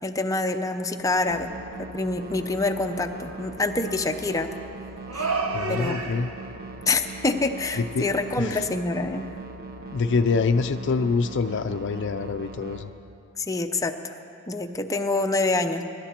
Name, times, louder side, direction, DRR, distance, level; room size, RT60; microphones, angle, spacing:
voice 1, 0.0-1.5 1.8-4.5 5.1-5.3 5.7-6.0 6.9-9.3 13.4-14.1 14.5-15.8, left 3 dB, 15° left, 5 dB, 0.6 m, -26 dB
sound 1, 1.3-12.8, right 2 dB, 45° right, 0.9 m, -40 dB
sound 2, 2.4-2.6 3.2-4.3 5.1-6.5, right 3 dB, 85° right, 1.2 m, -31 dB
voice 2, 5.5-6.3 7.8-8.1 8.4-8.7 9.9-12.9, left 4 dB, 55° left, 10 dB, 0.4 m, -25 dB
24.0 x 11.0 x 4.4 m, 2.7 s
head